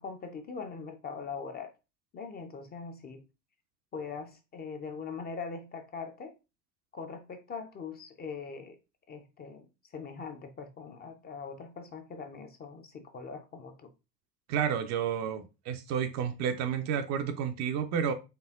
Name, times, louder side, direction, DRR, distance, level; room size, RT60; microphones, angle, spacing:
voice 1, 0.0-1.7 2.1-3.2 3.9-6.3 6.9-8.8 9.1-9.7 9.9-13.9, left 5 dB, 20° left, 0.5 m, -41 dB
voice 2, 14.5-18.1, right 8 dB, 35° right, 0.5 m, -31 dB
4.4 x 3.2 x 2.3 m
figure-of-eight pair, 75°, 49 cm